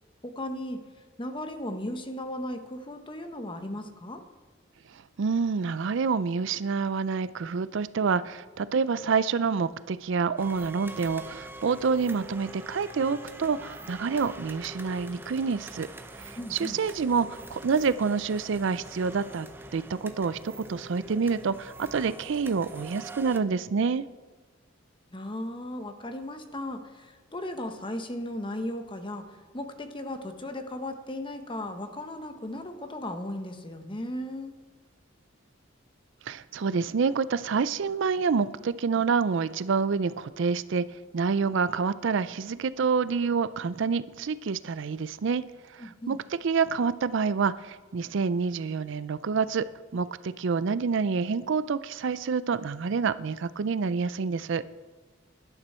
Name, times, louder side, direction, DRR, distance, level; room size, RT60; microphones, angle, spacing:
voice 1, 0.2-0.8 1.2-4.2 16.3-16.8 25.1-34.5 45.8-46.2, left 1 dB, 25° left, 7 dB, 1.1 m, -36 dB
voice 2, 5.2-15.9 16.2-24.1 36.2-40.9 41.1-45.4 45.7-49.7 49.9-54.6, right 5 dB, 65° right, 16 dB, 0.4 m, -27 dB
sound 1, 10.4-23.4, right 1 dB, 10° right, 0.8 m, -44 dB
17.0 x 11.5 x 4.4 m, 1.3 s
head